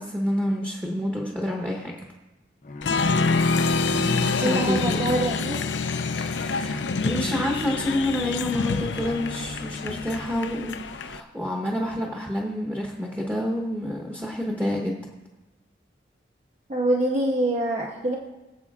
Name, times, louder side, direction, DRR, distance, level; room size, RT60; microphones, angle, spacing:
voice 1, 0.0-2.0 3.9-5.2 6.1-14.9, left 1 dB, 10° right, 0 dB, 1.0 m, -28 dB
Bowed string instrument, 2.6-10.8, left 3 dB, 45° left, 0.5 m, -39 dB
Applause, 2.8-11.2, left 4 dB, 85° left, 0.6 m, -26 dB
voice 2, 4.4-5.6 16.7-18.2, right 1 dB, 40° right, -2 dB, 1.3 m, -25 dB
22.0 x 7.8 x 2.4 m, 1.1 s
head